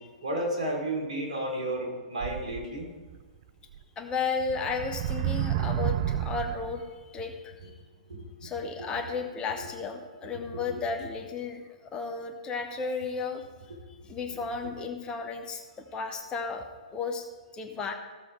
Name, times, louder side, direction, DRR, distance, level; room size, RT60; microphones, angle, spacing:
voice 1, 0.2-2.9 8.1-8.5 10.7-10.8, right 1 dB, 75° right, 0 dB, 3.4 m, -32 dB
sound 1, 2.2-3.2 3.7-3.8 4.4-6.9, right 11 dB, 45° right, 0.5 m, -31 dB
voice 2, 4.0-7.5 8.4-13.4 13.9-17.2 17.5-17.9, left 4 dB, 20° left, 5 dB, 1.3 m, -34 dB
15.5 x 7.0 x 4.7 m, 1.4 s
figure-of-eight pair, 115°, 4 cm